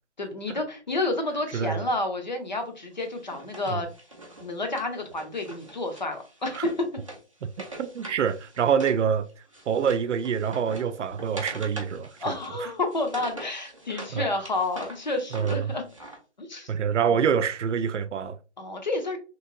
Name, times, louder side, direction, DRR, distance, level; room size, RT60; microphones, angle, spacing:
voice 1, 0.2-3.9 4.4-6.9 12.2-15.8 16.4-16.7 18.6-19.2, left 2 dB, 40° left, 0.6 m, -30 dB
voice 2, 1.5-1.9 3.7-3.8 6.6-6.7 7.4-7.5 7.8-9.3 9.7-12.1 14.1-14.2 15.3-15.8 16.7-18.4, right 7 dB, 90° right, 0.5 m, -26 dB
Wood, 3.0-9.0 9.3-14.1 14.4-16.2, right 1 dB, 30° right, 0.5 m, -43 dB
3.0 x 2.7 x 2.5 m
hypercardioid pair, 175°, 35 cm